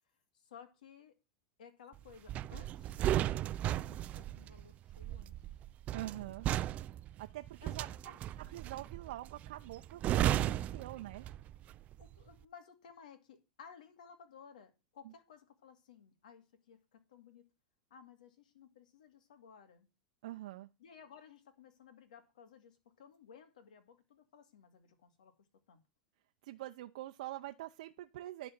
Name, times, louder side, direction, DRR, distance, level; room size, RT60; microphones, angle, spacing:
voice 1, 0.3-1.1 1.6-3.2 3.7-5.3 7.6-7.8 8.0-8.2 12.0-17.4 17.9-19.9 20.8-25.8, left 7 dB, 85° left, 2.2 m, -57 dB
sound 1, 2.3-11.6 11.9-12.2, right 12 dB, 35° right, 0.4 m, -35 dB
voice 2, 5.9-6.5 7.2-7.9 8.4-11.3 15.0-15.1 20.2-20.7 26.4-28.5, right 15 dB, 70° right, 0.7 m, -45 dB
11.0 x 4.2 x 7.4 m
supercardioid pair, 125°, 4 cm